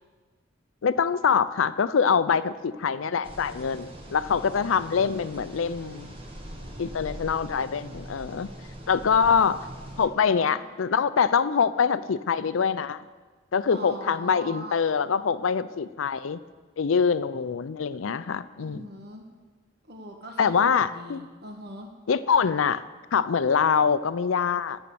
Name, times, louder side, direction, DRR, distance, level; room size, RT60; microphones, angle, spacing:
voice 1, 0.8-6.1 6.8-8.5 8.9-9.6 10.0-13.0 13.5-16.4 16.8-18.9 20.4-21.2 22.1-22.8 23.1-24.8, left 6 dB, 85° left, 15 dB, 0.5 m, -24 dB
sound 1, 3.2-10.1, equal, 30° right, 1.4 m, -42 dB
voice 2, 10.1-10.6 13.7-14.8 18.6-19.2 19.9-21.9, equal, 55° right, 2 dB, 1.4 m, -41 dB
12.0 x 8.2 x 6.9 m, 1.4 s
head